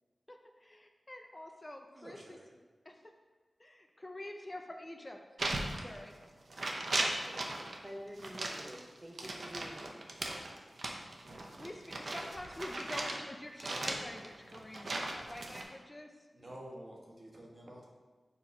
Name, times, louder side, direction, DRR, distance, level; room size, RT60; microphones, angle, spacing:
voice 1, 0.3-2.4 2.8-2.9 3.6-5.2 5.7-6.1 11.3-16.1, left 1 dB, 25° left, 3 dB, 0.4 m, -47 dB
voice 2, 1.9-2.5 16.3-17.9, right 1 dB, 45° right, -2 dB, 1.4 m, -50 dB
sound 1, 5.4-6.2 6.5-7.8 8.2-13.2 13.6-15.6, right 2 dB, 60° right, 0.7 m, -37 dB
voice 3, 7.2-10.0, equal, 25° right, 1 dB, 1.0 m, -48 dB
7.0 x 3.0 x 5.3 m, 1.3 s
wide cardioid pair, 75°, 0 cm